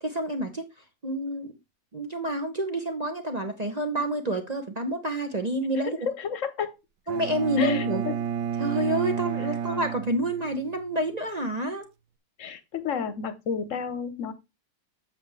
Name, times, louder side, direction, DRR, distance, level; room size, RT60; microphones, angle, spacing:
voice 1, 0.0-0.7 1.0-1.5 1.9-6.0 7.1-8.0 8.6-11.9, right 1 dB, 35° right, 0.6 m, -28 dB
voice 2, 5.8-6.7 7.6-8.2 12.4-14.3, left 6 dB, 55° left, 1.1 m, -31 dB
Bowed string instrument, 7.1-10.9, right 8 dB, 80° right, 1.3 m, -31 dB
7.9 x 6.7 x 3.2 m
omnidirectional pair, 1.8 m